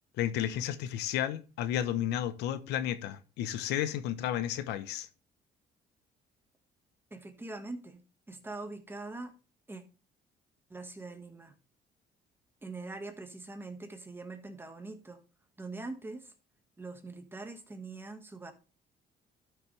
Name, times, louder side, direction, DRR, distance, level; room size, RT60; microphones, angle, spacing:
voice 1, 0.2-5.1, left 11 dB, 90° left, 1.0 m, -32 dB
voice 2, 7.1-9.3 9.7-9.8 10.7-11.6 12.6-15.2 15.6-16.3 16.8-18.5, right 3 dB, 15° right, 1.6 m, -43 dB
12.0 x 6.6 x 3.3 m
cardioid pair, 110°, 17 cm